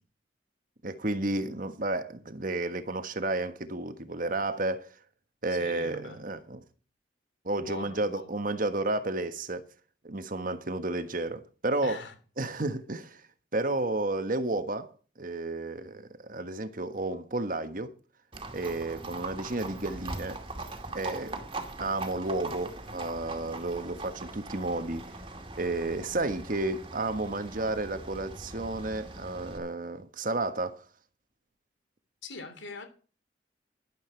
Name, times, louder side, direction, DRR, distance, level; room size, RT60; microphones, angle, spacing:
voice 1, 0.8-4.9 5.4-6.6 7.4-9.6 10.0-12.0 12.4-13.2 13.5-14.9 15.2-17.9 18.5-20.4 20.9-21.5 21.8-25.0 25.6-30.8, right 2 dB, 50° right, 1.4 m, -32 dB
voice 2, 5.5-6.2 7.6-8.3 11.8-12.1 32.2-32.9, left 3 dB, 90° left, 3.2 m, -42 dB
Livestock farm animals working animals, 18.3-29.6, right 2 dB, 30° right, 2.3 m, -41 dB
13.0 x 11.5 x 4.6 m
head